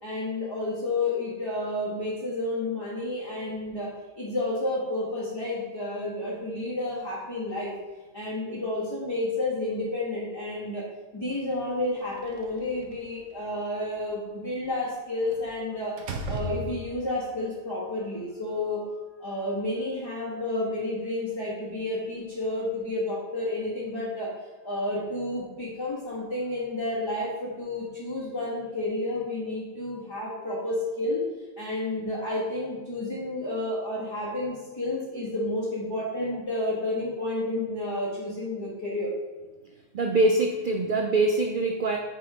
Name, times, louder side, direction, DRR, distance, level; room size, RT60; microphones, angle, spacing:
voice 1, 0.0-7.7 8.1-10.8 11.1-16.0 16.3-18.8 19.2-24.3 24.6-31.2 31.6-39.1, left 2 dB, 20° left, -7 dB, 1.2 m, -31 dB
Slam, 12.1-13.2 15.3-15.5 16.0-17.2, equal, 65° right, 1.0 m, -35 dB
voice 2, 39.9-42.0, right 2 dB, 80° right, 4 dB, 0.4 m, -23 dB
7.0 x 3.5 x 4.8 m, 1.2 s
omnidirectional pair, 1.5 m